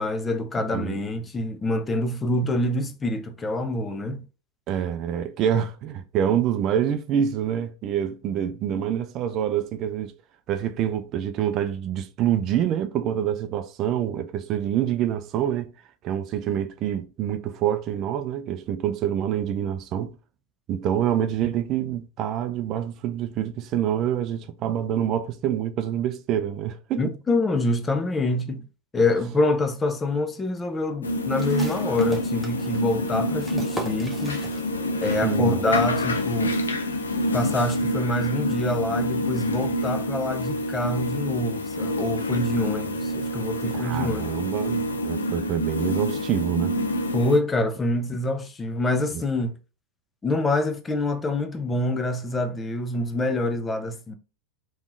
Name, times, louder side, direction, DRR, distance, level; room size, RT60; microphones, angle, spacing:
voice 1, 0.0-4.3 27.0-28.7 28.9-34.4 35.0-36.6 37.3-44.4 47.1-49.5 50.2-54.2, left 2 dB, 20° left, 0.6 m, -26 dB
voice 2, 4.7-10.1 10.5-15.7 16.0-20.1 20.7-27.1 35.2-35.6 43.7-46.8, right 10 dB, 45° right, 0.4 m, -26 dB
sound 1, 31.0-47.4, left 1 dB, 90° left, 0.6 m, -27 dB
sound 2, 31.4-35.0 35.3-35.4 35.8-36.3, right 1 dB, 5° right, 1.0 m, -38 dB
3.5 x 3.1 x 2.4 m
hypercardioid pair, 90°, 0 cm